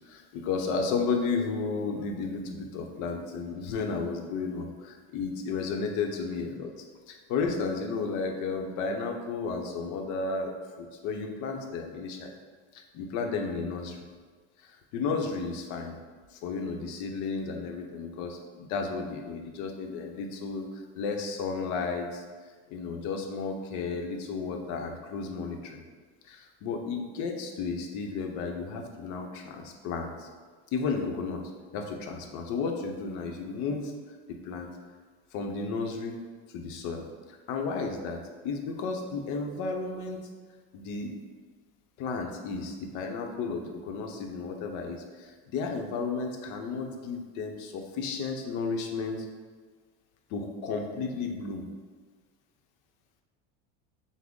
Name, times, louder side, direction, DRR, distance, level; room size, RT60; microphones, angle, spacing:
voice 1, 0.1-6.7 7.1-12.3 12.9-14.0 14.6-16.0 16.3-20.7 20.9-22.2 22.7-25.8 26.2-30.3 30.7-31.4 31.7-33.9 34.3-34.7 35.3-36.2 36.5-37.0 37.5-40.2 40.7-41.1 42.0-49.3 50.3-51.7, left 4 dB, 60° left, 3 dB, 0.7 m, -33 dB
6.0 x 2.1 x 3.6 m, 1.5 s
supercardioid pair, 130°, 34 cm